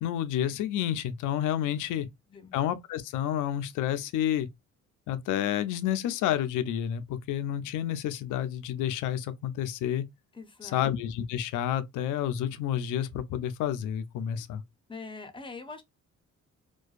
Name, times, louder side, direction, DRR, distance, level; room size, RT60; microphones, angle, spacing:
voice 1, 0.0-2.1 2.5-4.5 5.1-10.0 10.6-14.6, left 10 dB, 85° left, 0.5 m, -30 dB
voice 2, 1.6-2.5 10.3-10.9 14.9-15.8, left 4 dB, 15° left, 0.6 m, -44 dB
2.5 x 2.2 x 2.3 m
cardioid pair, 90°, 30 cm